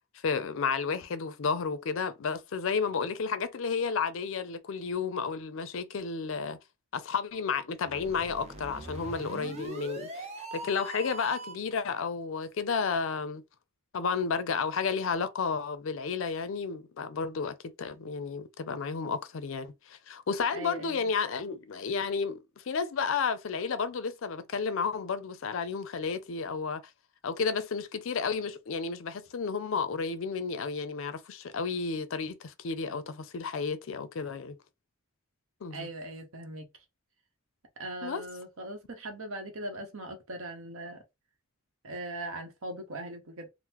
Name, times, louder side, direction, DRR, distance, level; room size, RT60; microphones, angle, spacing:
voice 1, 0.2-6.6 6.9-13.4 13.9-26.8 27.2-34.6 35.6-35.9 38.0-38.2, left 5 dB, 60° left, 0.4 m, -32 dB
sound 1, 7.8-11.7, right 2 dB, 30° right, 0.5 m, -41 dB
voice 2, 20.5-21.1 35.7-36.7 37.8-41.0 41.8-43.5, right 1 dB, 65° right, 0.9 m, -40 dB
3.6 x 2.0 x 2.9 m
head